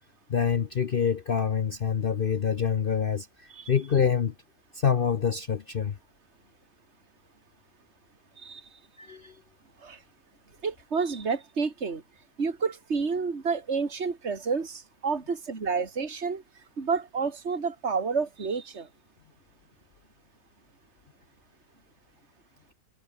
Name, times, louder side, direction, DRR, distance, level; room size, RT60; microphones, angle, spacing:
voice 1, 0.3-4.3 4.7-6.0 9.0-9.4, left 7 dB, 50° left, 0.6 m, -26 dB
voice 2, 8.4-8.7 9.8-10.0 10.6-12.0 12.4-16.4 16.8-18.9, right 5 dB, 40° right, 2.7 m, -30 dB
omnidirectional pair, 1.8 m